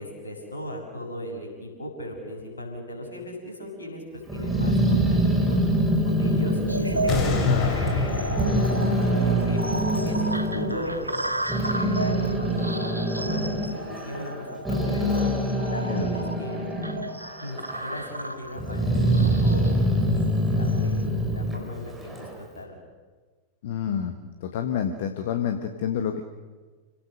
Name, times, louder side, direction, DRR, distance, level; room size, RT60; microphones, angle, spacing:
voice 1, 0.0-5.2 5.5-5.6 6.0-9.6 10.0-11.0 11.6-15.3 15.7-16.7 17.4-20.0 20.3-22.8, left 1 dB, 75° left, 1 dB, 6.9 m, -37 dB
Growling, 4.3-8.1 8.4-10.7 11.2-17.1 17.4-18.1 18.6-22.3, right 1 dB, 10° right, 5.7 m, -25 dB
sound 1, 6.7-20.9, right 2 dB, 85° right, 1.0 m, -34 dB
sound 2, 7.1-12.2 12.6-12.7, left 3 dB, 35° left, 3.9 m, -28 dB
voice 2, 23.6-24.1 24.4-26.2, left 8 dB, 55° left, 6 dB, 1.5 m, -28 dB
29.5 x 18.0 x 6.6 m, 1.4 s
figure-of-eight pair, 90°, 0 cm